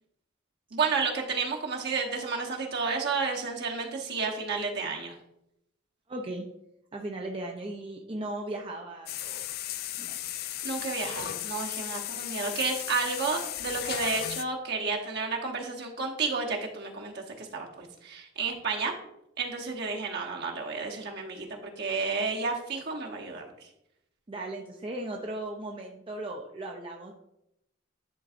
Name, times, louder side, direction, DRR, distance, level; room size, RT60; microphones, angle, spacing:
voice 1, 0.7-5.1 10.6-18.9 19.4-23.4, right 4 dB, 55° right, 0 dB, 1.1 m, -31 dB
voice 2, 6.1-6.5 6.9-9.5 10.0-10.2 24.3-27.1, right 1 dB, 25° right, 1 dB, 0.5 m, -37 dB
sound 1, 9.1-14.4, left 12 dB, 50° left, 0.3 m, -35 dB
10.5 x 3.9 x 2.5 m, 0.82 s
head